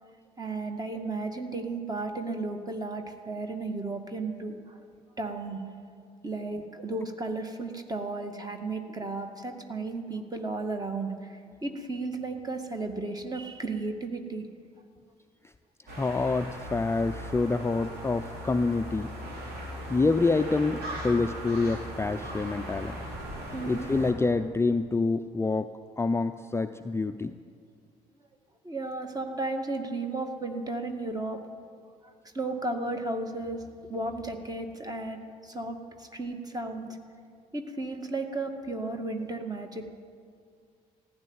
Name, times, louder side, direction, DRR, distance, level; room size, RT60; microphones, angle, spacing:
voice 1, 0.0-4.8 5.2-5.6 6.2-14.5 23.5-23.9 28.6-31.4 32.0-37.0 37.5-39.8, right 2 dB, 20° right, 5 dB, 2.0 m, -34 dB
sound 1, 15.9-24.1, equal, 60° right, 3.6 m, -38 dB
voice 2, 16.0-19.1 19.9-23.0 23.6-27.4, left 3 dB, 15° left, 9 dB, 0.5 m, -27 dB
15.0 x 10.0 x 8.1 m, 2.2 s
hypercardioid pair, 50°, 18 cm